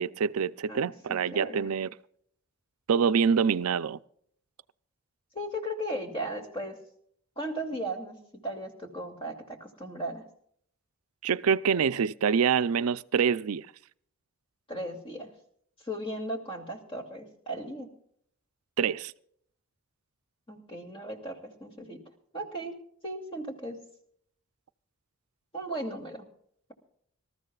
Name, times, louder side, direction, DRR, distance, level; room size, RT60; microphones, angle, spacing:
voice 1, 0.0-1.9 2.9-4.0 11.2-13.7 18.8-19.1, right 6 dB, 90° right, 0.5 m, -26 dB
voice 2, 0.7-1.7 5.3-6.8 7.4-8.2 8.4-10.2 14.7-15.3 15.8-17.9 20.5-22.0 22.3-22.8 23.0-23.8 25.5-26.2, right 1 dB, 25° left, 2.6 m, -36 dB
26.0 x 14.0 x 2.4 m
head